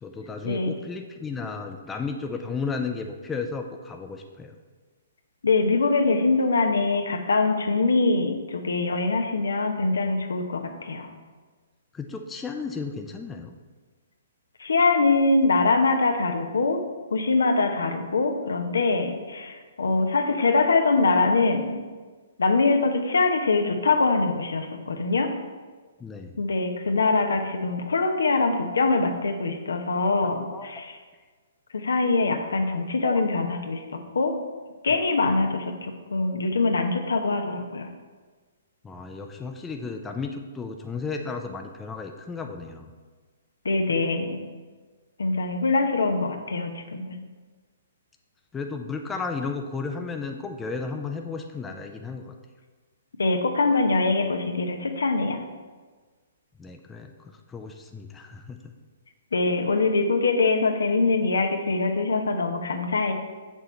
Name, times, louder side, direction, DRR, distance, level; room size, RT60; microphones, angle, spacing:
voice 1, 0.0-4.5 11.9-13.5 26.0-26.4 30.2-30.7 33.0-33.2 38.8-42.9 48.5-52.4 56.6-58.7, left 4 dB, 15° left, 4 dB, 0.6 m, -34 dB
voice 2, 5.4-11.1 14.6-16.8 17.1-21.8 22.4-25.3 26.4-31.0 31.7-34.3 34.8-37.9 43.6-44.4 45.2-47.2 53.2-55.4 59.3-63.1, left 3 dB, 75° left, 5 dB, 0.9 m, -23 dB
6.9 x 6.4 x 4.4 m, 1.4 s
figure-of-eight pair, 125°, 0 cm